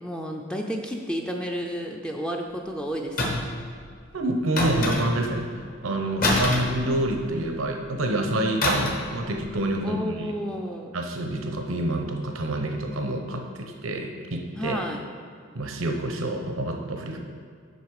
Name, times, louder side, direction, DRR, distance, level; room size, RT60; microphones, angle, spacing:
voice 1, 0.0-3.5 6.3-6.6 9.8-10.9 14.6-15.0, equal, 5° left, 1 dB, 0.5 m, -31 dB
sound 1, 3.2-3.6 4.6-5.3 6.2-7.4 8.6-9.1 9.4-9.6, left 1 dB, 45° left, 1.2 m, -25 dB
voice 2, 4.1-5.5 5.8-10.3 10.9-14.8 15.5-17.2, right 1 dB, 85° right, 3 dB, 0.9 m, -27 dB
8.1 x 5.8 x 4.8 m, 2.2 s
head